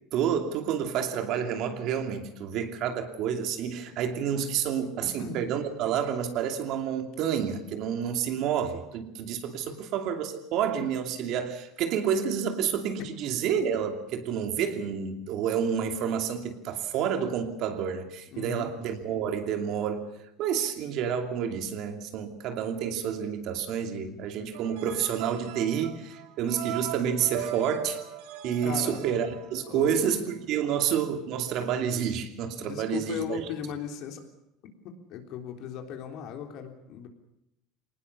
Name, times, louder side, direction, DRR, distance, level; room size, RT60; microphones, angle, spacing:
voice 1, 0.1-20.1 20.4-28.0 28.4-33.4, right 8 dB, 55° right, 6 dB, 2.7 m, -29 dB
voice 2, 5.0-5.4 9.7-9.8 18.3-18.7 25.7-25.8 28.4-29.0 29.7-30.1 32.6-34.2 34.8-37.1, left 8 dB, 55° left, 5 dB, 3.5 m, -37 dB
sound 1, 24.5-29.9, right 10 dB, 80° right, 3.1 m, -39 dB
22.5 x 19.0 x 7.0 m, 0.82 s
cardioid pair, 145°, 0 cm